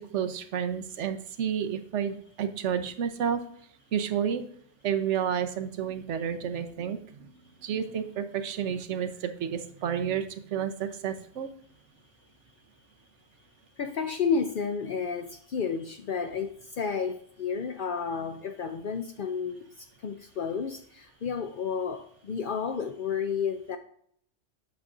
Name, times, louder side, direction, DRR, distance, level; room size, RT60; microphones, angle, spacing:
voice 1, 0.0-3.4 3.9-4.4 4.8-7.3 7.6-10.2 10.5-11.5, right 8 dB, 70° right, 8 dB, 1.0 m, -30 dB
voice 2, 13.8-23.8, left 6 dB, 60° left, 7 dB, 0.6 m, -31 dB
8.0 x 6.7 x 2.4 m, 0.64 s
omnidirectional pair, 1.3 m